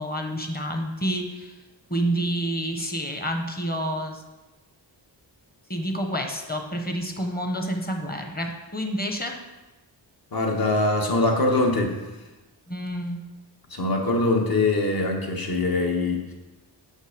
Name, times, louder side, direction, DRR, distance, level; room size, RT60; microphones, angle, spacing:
voice 1, 0.0-1.5 1.9-4.2 5.7-9.4 12.7-13.2, equal, 20° left, 4 dB, 1.1 m, -28 dB
voice 2, 10.3-12.0 13.7-16.3, left 2 dB, 50° left, 1 dB, 1.5 m, -23 dB
6.5 x 6.4 x 5.1 m, 1.1 s
wide cardioid pair, 105°, 45 cm